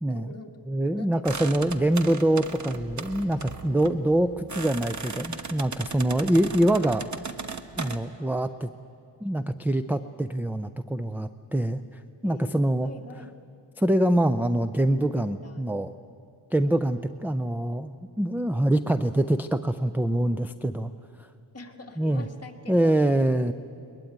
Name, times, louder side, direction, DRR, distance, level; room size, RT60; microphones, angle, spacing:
voice 1, 0.1-0.6 0.9-1.3 3.4-4.2 6.1-6.4 12.2-13.3 15.2-15.7 21.5-23.4, left 2 dB, 30° left, 2 dB, 2.2 m, -45 dB
voice 2, 0.7-7.1 7.8-8.7 9.2-12.9 13.8-15.9 16.5-20.9 21.2-21.3 22.0-22.3 22.7-23.5, right 1 dB, 5° right, 11 dB, 0.5 m, -25 dB
sound 1, 1.3-8.0, right 4 dB, 35° right, 1.3 m, -37 dB
21.5 x 21.0 x 9.3 m, 2.7 s
wide cardioid pair, 125°, 47 cm